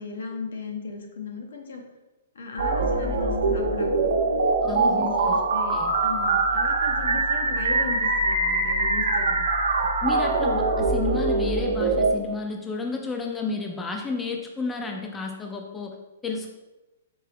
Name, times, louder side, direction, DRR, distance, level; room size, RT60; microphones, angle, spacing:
voice 1, 0.0-1.8 2.3-4.1 4.7-9.4, left 4 dB, 80° left, 2 dB, 0.9 m, -36 dB
sound 1, 2.6-12.1, right 3 dB, 70° right, 0.7 m, -23 dB
voice 2, 4.6-5.4 5.7-5.9 9.2-9.3 10.0-15.9 16.2-16.6, left 4 dB, 10° left, 2 dB, 0.3 m, -31 dB
4.6 x 2.8 x 3.4 m, 1.1 s
hypercardioid pair, 160°, 0 cm